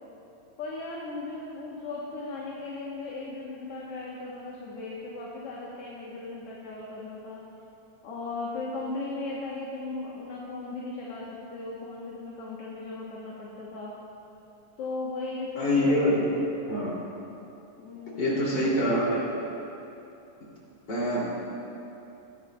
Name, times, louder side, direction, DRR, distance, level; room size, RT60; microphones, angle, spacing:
voice 1, 0.6-7.4 8.0-13.9 14.8-16.3 17.8-18.9, left 3 dB, 60° left, -4 dB, 2.0 m, -37 dB
voice 2, 15.6-16.3 16.7-17.0 18.2-19.3 20.9-21.3, equal, 35° left, -6 dB, 3.4 m, -25 dB
21.0 x 11.5 x 2.3 m, 2.8 s
omnidirectional pair, 3.5 m